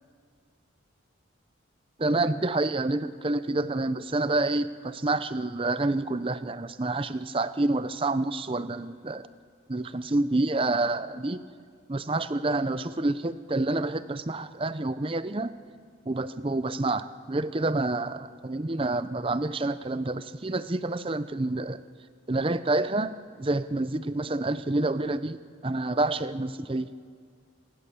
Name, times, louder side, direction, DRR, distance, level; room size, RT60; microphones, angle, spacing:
voice 1, 2.0-9.3 9.7-11.4 11.9-15.5 16.1-21.8 22.3-26.9, right 2 dB, 25° right, 13 dB, 0.6 m, -28 dB
27.5 x 19.5 x 7.0 m, 2.1 s
head